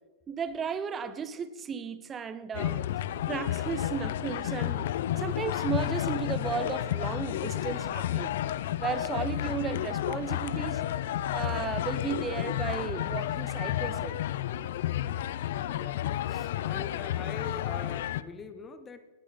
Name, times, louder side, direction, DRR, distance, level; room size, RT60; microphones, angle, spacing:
voice 1, 0.3-8.4 8.8-10.8 11.3-14.2, right 6 dB, 20° right, 0.7 m, -35 dB
sound 1, 2.5-18.2, left 12 dB, 65° left, 0.5 m, -31 dB
voice 2, 15.0-19.1, left 5 dB, 15° left, 0.8 m, -44 dB
18.0 x 8.7 x 4.1 m
hypercardioid pair, 140°, 0 cm